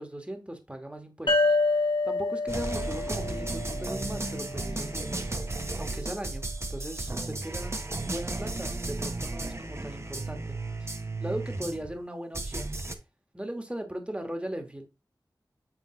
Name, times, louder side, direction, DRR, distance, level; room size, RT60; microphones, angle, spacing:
voice 1, 0.0-1.4 2.0-5.2 5.8-7.7 8.1-12.7 13.3-14.9, right 1 dB, 15° right, 1.4 m, -38 dB
sound 1, 1.3-4.7, left 3 dB, 85° left, 1.9 m, -28 dB
sound 2, 2.5-12.0 12.3-13.0, right 2 dB, 35° right, 0.8 m, -34 dB
7.6 x 3.5 x 3.8 m
wide cardioid pair, 60°, 8 cm